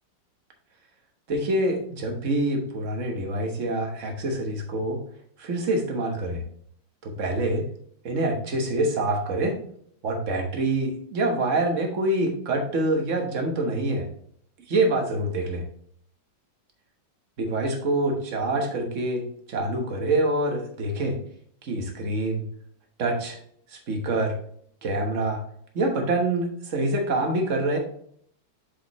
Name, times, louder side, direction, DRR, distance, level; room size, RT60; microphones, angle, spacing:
voice 1, 1.3-5.0 5.4-6.4 7.0-7.7 8.0-9.6 10.0-14.1 14.7-15.6 17.4-21.2 21.6-22.4 23.0-23.4 23.7-24.4 24.8-25.4 25.7-27.8, right 2 dB, 45° right, 2 dB, 1.4 m, -26 dB
7.1 x 4.9 x 3.1 m, 0.63 s
omnidirectional pair, 2.0 m